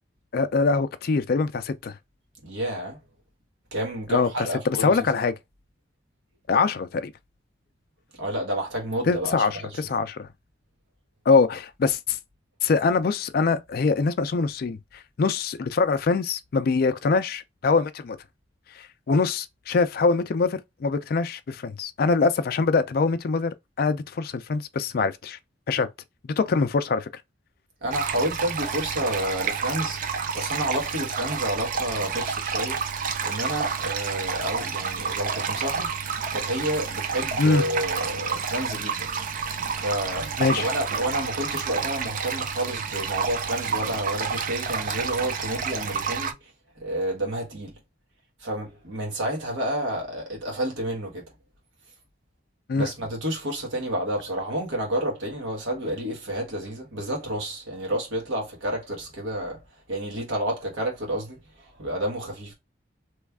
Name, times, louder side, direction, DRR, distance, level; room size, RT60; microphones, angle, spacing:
voice 1, 0.3-2.0 4.1-4.3 4.7-5.3 6.5-7.1 9.1-10.3 11.3-12.2 12.6-18.2 18.8-25.4 25.7-25.9 26.2-27.1 37.4-37.6 40.4-40.7 52.7-52.9, left 4 dB, 50° left, 0.4 m, -23 dB
voice 2, 2.4-3.0 3.7-5.1 8.2-9.8 27.8-36.0 36.3-39.1 39.7-46.4 46.8-47.7 48.4-51.2 52.8-59.6 59.9-62.5, right 1 dB, 85° right, 1.2 m, -30 dB
sound 1, 27.9-46.3, right 6 dB, 45° right, 0.4 m, -29 dB
3.1 x 2.4 x 3.4 m
head